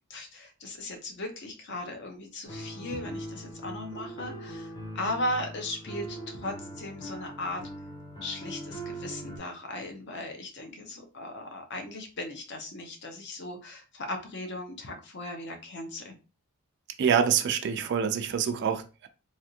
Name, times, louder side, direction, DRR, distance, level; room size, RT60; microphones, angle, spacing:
voice 1, 0.1-7.6 8.2-16.1, left 1 dB, 55° left, 0.8 m, -37 dB
sound 1, 2.4-9.4, right 1 dB, 20° left, 0.8 m, -41 dB
voice 2, 17.0-19.1, right 7 dB, 50° right, 0.3 m, -26 dB
3.3 x 2.4 x 2.7 m
head